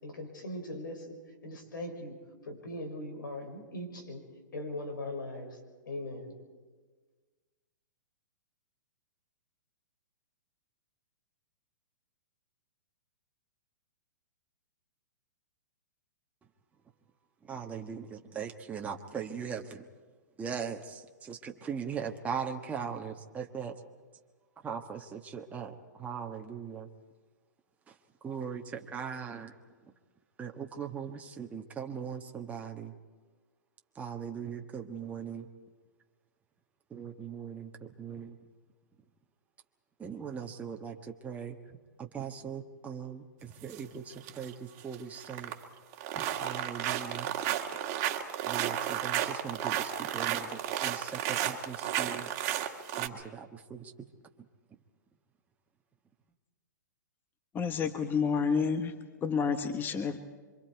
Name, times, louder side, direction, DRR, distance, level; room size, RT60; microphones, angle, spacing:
voice 1, 0.0-4.2 4.5-5.6 5.9-6.3, left 1 dB, 80° left, 5 dB, 5.6 m, -40 dB
voice 2, 17.4-19.9 20.4-23.8 24.6-26.9 27.9-28.0 28.2-29.6 30.4-32.9 33.9-35.5 36.9-38.4 40.0-45.5 46.1-47.3 48.4-52.3 53.0-53.9, right 7 dB, 15° right, 2 dB, 1.4 m, -40 dB
sound 1, 43.6-43.8 44.2-44.5 44.8-45.6 45.9-53.1, right 11 dB, 35° right, 1.9 m, -33 dB
voice 3, 57.5-58.9 59.2-60.2, left 6 dB, 20° left, 9 dB, 1.3 m, -29 dB
27.5 x 24.5 x 4.7 m, 1.4 s
hypercardioid pair, 130°, 10 cm